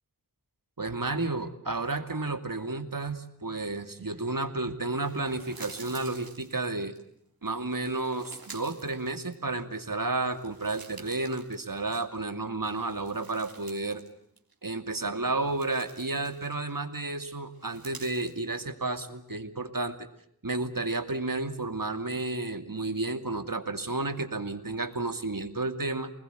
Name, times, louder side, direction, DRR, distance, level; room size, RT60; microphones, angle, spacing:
voice 1, 0.8-6.9 7.4-14.0 14.6-20.1 20.4-26.1, right 2 dB, 70° right, 7 dB, 2.6 m, -32 dB
sound 1, 5.0-7.0 7.7-9.7 10.1-12.3 12.7-14.1 14.4-14.5 15.1-16.8 17.5-18.4, right 4 dB, 90° right, 3.5 m, -50 dB
29.5 x 20.5 x 8.1 m, 0.71 s
wide cardioid pair, 45°, 35 cm